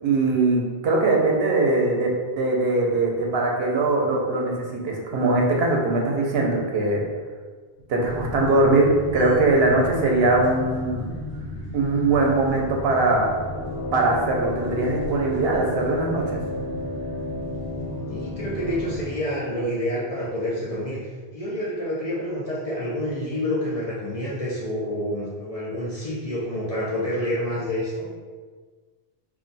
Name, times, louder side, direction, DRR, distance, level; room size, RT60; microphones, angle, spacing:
voice 1, 0.0-7.0 7.9-11.1 11.7-13.3 13.9-16.4, right 2 dB, 75° right, -1 dB, 0.8 m, -21 dB
sound 1, 8.0-19.2, left 1 dB, 35° right, 0.6 m, -35 dB
Brass instrument, 13.4-19.0, left 2 dB, 75° left, 1.0 m, -33 dB
voice 2, 18.1-21.0 21.3-28.1, equal, 45° left, -7 dB, 0.5 m, -28 dB
2.5 x 2.2 x 3.9 m, 1.5 s
omnidirectional pair, 1.1 m